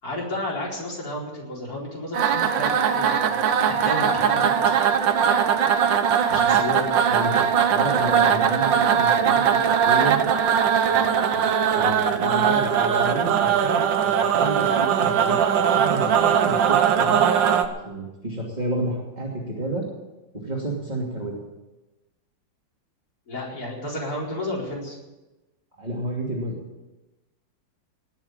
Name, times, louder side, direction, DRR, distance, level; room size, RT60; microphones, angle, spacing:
voice 1, 0.0-4.7 5.1-5.5 6.3-7.1 23.3-25.0, left 1 dB, 50° left, -4 dB, 5.0 m, -32 dB
sound 1, 2.1-17.7, right 8 dB, 80° right, 1.7 m, -20 dB
voice 2, 7.1-10.2 10.8-11.4 11.7-13.9 14.3-17.2 17.8-19.9 20.3-21.3 25.8-26.6, right 1 dB, 20° right, -3 dB, 2.8 m, -31 dB
19.0 x 7.3 x 8.9 m, 1.1 s
omnidirectional pair, 2.0 m